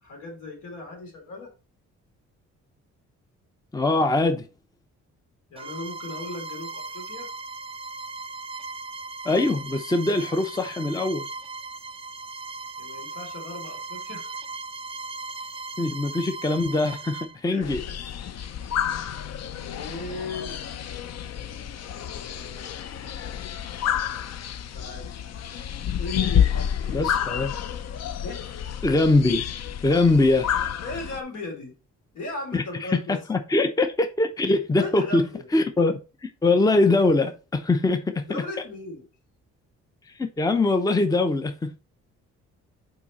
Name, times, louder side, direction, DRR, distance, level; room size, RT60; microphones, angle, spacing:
voice 1, 0.0-1.5 5.5-7.3 12.8-14.3 17.5-18.0 18.9-19.3 19.6-20.6 21.9-22.8 24.6-25.1 25.4-25.6 26.0-27.2 28.2-28.5 30.8-31.7 32.1-33.2 34.8-35.5 38.3-39.1, left 2 dB, 80° left, 3.6 m, -37 dB
voice 2, 3.7-4.5 9.2-11.3 15.8-17.8 26.9-27.5 28.8-29.5 29.8-30.5 32.5-32.6 32.9-35.2 35.5-38.4 40.2-41.7, left 2 dB, 10° left, 0.7 m, -22 dB
Bowed string instrument, 5.6-17.4, right 3 dB, 20° right, 0.5 m, -37 dB
sound 1, 17.6-31.2, left 9 dB, 60° left, 0.7 m, -29 dB
5.9 x 4.9 x 4.1 m
cardioid pair, 90°, 30 cm